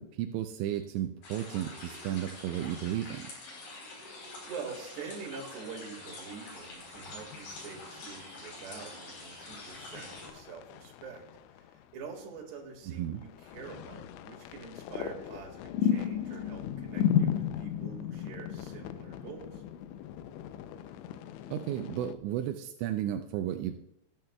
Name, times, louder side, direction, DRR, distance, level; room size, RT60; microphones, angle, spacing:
voice 1, 0.0-3.3 13.0-13.2 21.5-23.8, right 11 dB, 90° right, 6 dB, 2.9 m, -33 dB
sound 1, 1.2-10.3, left 2 dB, 55° left, 5.5 m, -46 dB
voice 2, 4.4-11.2 11.6-19.6, right 5 dB, 70° right, 0 dB, 3.8 m, -45 dB
sound 2, 6.9-8.0 9.1-12.1 12.4-12.5 12.9-22.1, left 9 dB, 85° left, 2.8 m, -35 dB
18.0 x 11.0 x 2.3 m, 0.81 s
omnidirectional pair, 5.2 m